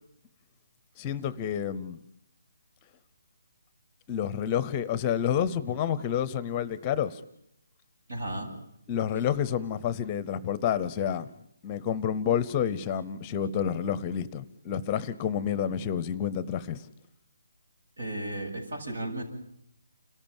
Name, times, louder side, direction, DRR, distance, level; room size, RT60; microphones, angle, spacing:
voice 1, 1.0-2.0 4.1-7.2 8.9-11.3 11.6-16.9, left 9 dB, 20° left, 18 dB, 0.8 m, -29 dB
voice 2, 8.1-8.5 18.0-19.2, right 1 dB, 75° right, 2 dB, 8.0 m, -34 dB
29.5 x 13.5 x 7.2 m, 0.75 s
hypercardioid pair, 165°, 0 cm